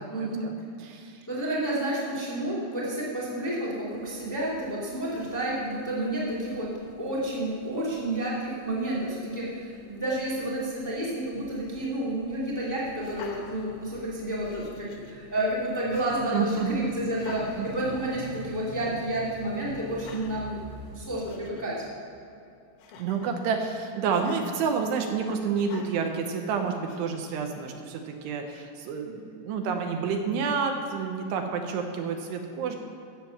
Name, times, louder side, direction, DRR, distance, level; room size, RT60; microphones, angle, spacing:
voice 1, 0.1-0.5 1.3-6.7 7.0-20.6 20.9-21.8, right 1 dB, 15° left, -7 dB, 0.5 m, -30 dB
voice 2, 0.8-1.2 16.3-16.7 17.6-17.7 23.0-32.8, right 5 dB, 75° right, 4 dB, 2.7 m, -29 dB
sound 1, 3.9-21.1, right 2 dB, 50° right, 2.6 m, -48 dB
Laughter, 13.0-14.1 14.4-15.1 15.9-16.4 17.1-18.4 18.7-19.0 19.9-20.5 21.0-21.1 21.3-21.7 22.8-23.4 24.1-24.4 25.6-26.0 26.9-27.5, left 5 dB, 85° left, 3.6 m, -46 dB
14.5 x 7.4 x 5.8 m, 2.7 s
omnidirectional pair, 5.2 m